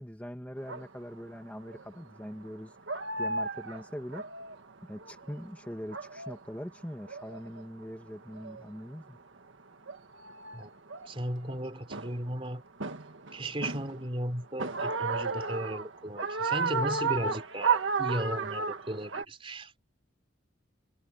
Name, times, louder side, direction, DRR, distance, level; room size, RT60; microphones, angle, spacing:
voice 1, 0.0-2.7 3.2-4.2 4.8-9.2, equal, 5° left, 2.2 m, -42 dB
sound 1, 0.7-0.8 1.7-2.0 2.4-2.5 2.9-5.5 5.7-6.4 6.8-7.6 8.3-8.7 9.5-9.6 9.9-11.6 11.9-12.3 12.8-14.2 14.6-19.2, right 4 dB, 70° right, 1.7 m, -33 dB
voice 2, 11.0-12.6 13.3-19.8, right 1 dB, 25° right, 3.5 m, -35 dB
head